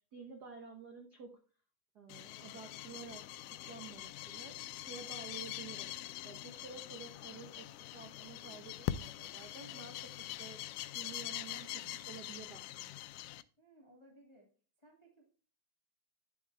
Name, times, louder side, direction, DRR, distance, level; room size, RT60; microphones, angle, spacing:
voice 1, 0.0-1.3 1.9-13.1, right 5 dB, 80° right, 5 dB, 0.9 m, -51 dB
sound 1, 2.1-13.4, left 14 dB, 85° left, 2.1 m, -44 dB
voice 2, 13.6-14.5 14.8-15.2, right 1 dB, 10° left, 0 dB, 2.1 m, -61 dB
11.0 x 7.1 x 3.4 m, 0.38 s
omnidirectional pair, 3.6 m